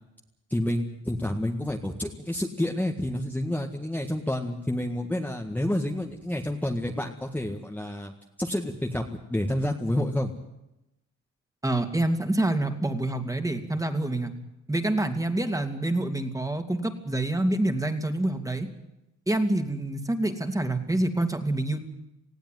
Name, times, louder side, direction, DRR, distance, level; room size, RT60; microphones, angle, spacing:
voice 1, 0.5-8.1 8.4-10.3, left 1 dB, 5° left, 1 dB, 1.8 m, -29 dB
voice 2, 11.6-14.3 14.7-18.7 19.3-21.8, right 1 dB, 10° right, 6 dB, 2.7 m, -27 dB
19.5 x 16.0 x 9.5 m, 0.90 s
cardioid pair, 90°, 30 cm